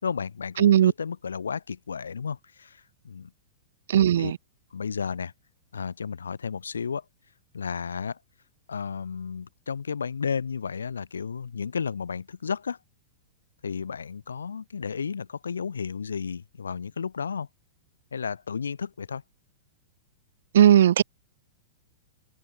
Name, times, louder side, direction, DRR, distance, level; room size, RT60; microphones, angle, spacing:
voice 1, 0.0-3.3 4.2-4.3 4.7-5.3 5.7-7.0 7.5-8.2 8.7-12.8 13.6-17.5 18.1-19.2, left 6 dB, 80° left, 7.1 m, -33 dB
voice 2, 0.6-0.9 3.9-4.4 20.5-21.0, right 10 dB, 65° right, 3.3 m, -17 dB
open air
hypercardioid pair, 105°, 0 cm